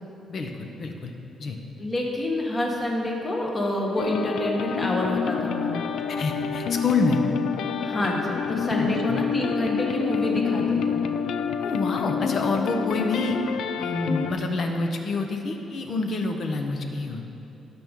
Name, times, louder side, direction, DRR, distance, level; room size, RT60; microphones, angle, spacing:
voice 1, 0.3-1.1 1.4-1.6 6.1-7.2 8.8-9.2 11.6-13.4 13.8-17.2, left 3 dB, 45° left, 4 dB, 0.9 m, -27 dB
voice 2, 1.8-5.8 7.8-11.1, left 1 dB, 20° left, -1 dB, 1.4 m, -27 dB
sound 1, 4.0-14.3, left 6 dB, 70° left, 0.4 m, -28 dB
17.0 x 6.1 x 3.7 m, 2.9 s
cardioid pair, 165°, 0 cm